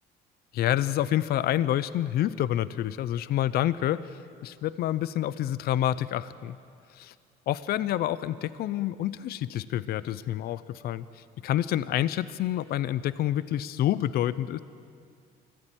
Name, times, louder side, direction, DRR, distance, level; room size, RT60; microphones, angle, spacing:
voice 1, 0.5-6.6 6.9-7.1 7.5-11.1 11.4-14.6, left 12 dB, 65° left, 16 dB, 0.7 m, -28 dB
24.0 x 15.0 x 9.0 m, 2.3 s
cardioid pair, 110°, 17 cm